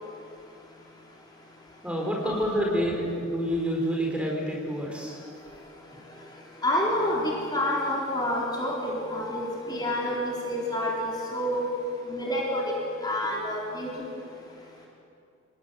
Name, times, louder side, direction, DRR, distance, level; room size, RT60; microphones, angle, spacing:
voice 1, 1.8-5.2, equal, 5° right, -1 dB, 4.6 m, -28 dB
voice 2, 6.6-11.6 12.1-12.7 13.0-13.9, left 1 dB, 20° left, -3 dB, 4.2 m, -28 dB
27.5 x 20.5 x 9.4 m, 2.6 s
head